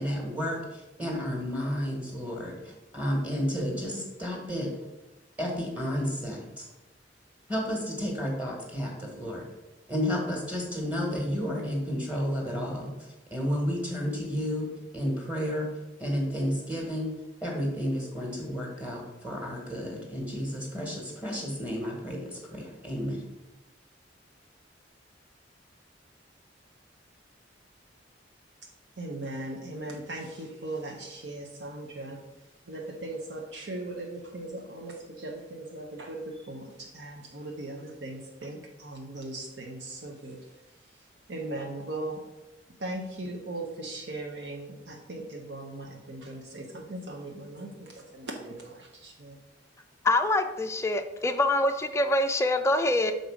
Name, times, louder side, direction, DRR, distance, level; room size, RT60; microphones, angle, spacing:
voice 1, 0.0-4.7 5.4-6.7 7.5-9.4 9.9-12.9 13.3-14.7 14.9-15.7 16.0-17.1 17.4-23.2, equal, 10° right, -1 dB, 1.4 m, -31 dB
voice 2, 29.0-32.2 32.7-40.4 41.3-42.2 42.8-49.4, right 2 dB, 65° right, 1 dB, 0.8 m, -38 dB
voice 3, 50.0-53.1, left 2 dB, 15° left, 6 dB, 0.4 m, -25 dB
6.6 x 3.9 x 4.9 m, 1.0 s
head